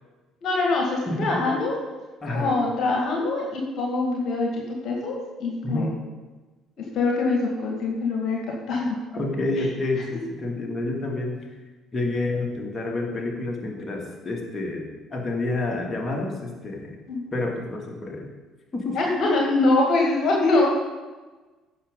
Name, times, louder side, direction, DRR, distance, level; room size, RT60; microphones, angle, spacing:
voice 1, 0.4-1.7 2.3-5.9 6.8-8.4 8.7-9.0 9.6-9.7 17.1-17.3 18.9-20.7, left 3 dB, 50° left, -1 dB, 2.0 m, -24 dB
voice 2, 1.1-1.4 2.2-2.6 5.6-5.9 9.1-11.4 11.9-14.8 15.1-16.9 17.3-18.3 18.7-19.0, left 2 dB, 25° left, -1 dB, 2.5 m, -28 dB
15.5 x 6.3 x 3.9 m, 1.3 s
figure-of-eight pair, 50°, 0 cm